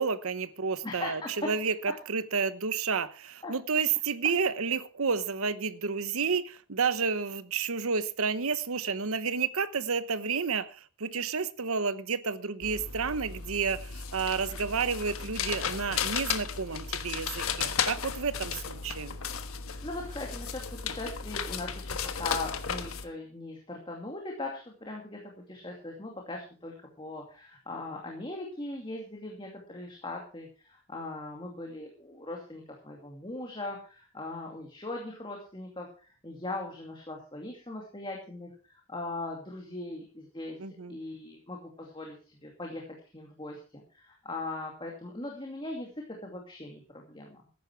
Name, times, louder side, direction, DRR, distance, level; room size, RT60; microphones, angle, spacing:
voice 1, 0.0-1.7 2.1-19.2 40.6-41.0, right 5 dB, 80° right, 1.0 m, -30 dB
voice 2, 0.8-1.4 3.4-3.5 19.8-47.4, left 2 dB, 25° left, 2.4 m, -40 dB
sound 1, 12.6-23.0, left 6 dB, 80° left, 1.3 m, -35 dB
14.5 x 10.5 x 4.6 m
head